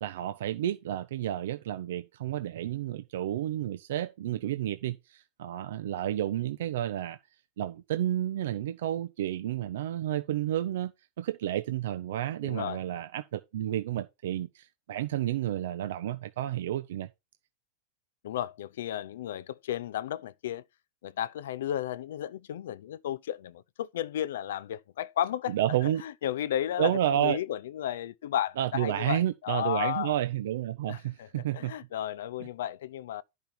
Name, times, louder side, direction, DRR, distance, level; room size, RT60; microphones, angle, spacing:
voice 1, 0.0-7.2 7.6-17.1 25.5-26.0 26.8-27.4 28.6-31.7, right 12 dB, 80° right, 0.6 m, -31 dB
voice 2, 12.4-12.8 18.2-20.6 21.0-25.6 25.8-30.1 30.9-31.3 31.5-33.2, left 11 dB, 90° left, 0.5 m, -33 dB
10.5 x 5.2 x 4.3 m
supercardioid pair, 160°, 0 cm